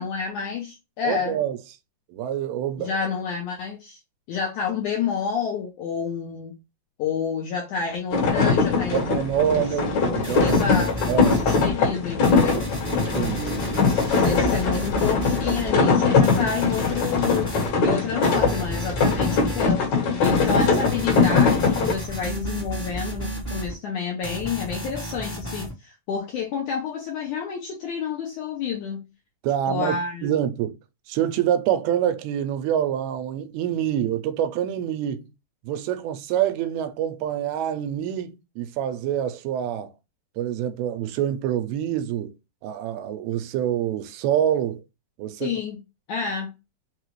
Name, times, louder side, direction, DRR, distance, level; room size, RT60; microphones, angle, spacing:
voice 1, 0.0-1.4 2.8-4.0 4.3-6.5 7.0-9.2 10.4-12.7 14.1-17.5 17.8-19.8 20.2-29.1 29.7-30.3 45.4-45.8 46.1-46.5, left 6 dB, 75° left, 1.8 m, -29 dB
voice 2, 1.0-1.6 2.1-2.9 8.9-10.6 11.1-11.4 13.0-14.2 29.4-30.7 31.1-35.3 35.6-39.9 40.4-42.3 42.6-44.8 45.2-45.5, right 10 dB, 85° right, 2.5 m, -26 dB
sound 1, 8.1-21.9, left 4 dB, 55° left, 2.4 m, -21 dB
sound 2, 10.2-11.7 12.2-15.7 16.2-17.7 18.2-19.7 20.2-23.7 24.2-25.7, right 1 dB, 35° left, 0.6 m, -32 dB
5.9 x 2.4 x 3.0 m
omnidirectional pair, 4.4 m